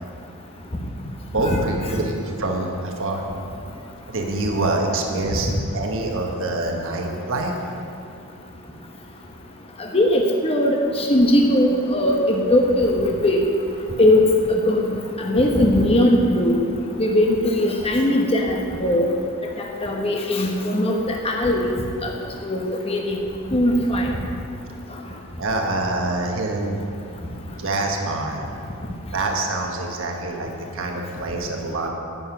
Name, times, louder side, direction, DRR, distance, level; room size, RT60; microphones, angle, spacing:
voice 1, 1.3-3.2 4.1-7.5 25.4-26.8 27.6-28.4 29.1-31.9, right 2 dB, 60° right, 1 dB, 1.4 m, -25 dB
voice 2, 9.8-13.4 14.0-14.8 15.2-16.6 17.0-19.1 19.8-21.7 22.0-22.1 22.4-23.2 23.5-24.1, left 1 dB, 25° left, 0 dB, 1.0 m, -19 dB
11.0 x 9.7 x 6.0 m, 2.5 s
head